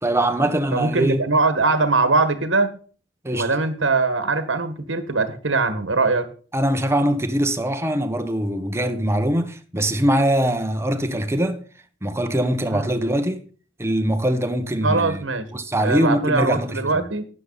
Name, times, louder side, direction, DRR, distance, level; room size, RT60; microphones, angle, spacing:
voice 1, 0.0-1.2 3.2-3.5 6.5-11.6 12.0-13.4 13.8-15.2 15.5-17.1, right 1 dB, 15° right, 1.1 m, -22 dB
voice 2, 0.7-2.7 3.3-6.3 12.7-12.9 14.8-15.5 15.8-17.2, right 3 dB, 80° right, 1.6 m, -21 dB
12.5 x 9.7 x 4.0 m
head